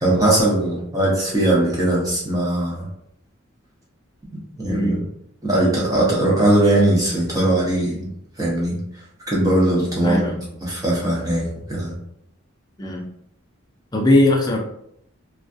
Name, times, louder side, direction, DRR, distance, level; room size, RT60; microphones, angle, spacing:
voice 1, 0.0-2.9 4.3-5.0 5.4-8.1 8.4-8.8 9.3-11.9, right 1 dB, 15° right, -5 dB, 0.7 m, -20 dB
voice 2, 4.7-5.0 10.0-10.4 12.8-13.1 13.9-14.6, left 1 dB, 20° left, 1 dB, 0.4 m, -19 dB
2.3 x 2.2 x 2.5 m, 0.72 s
head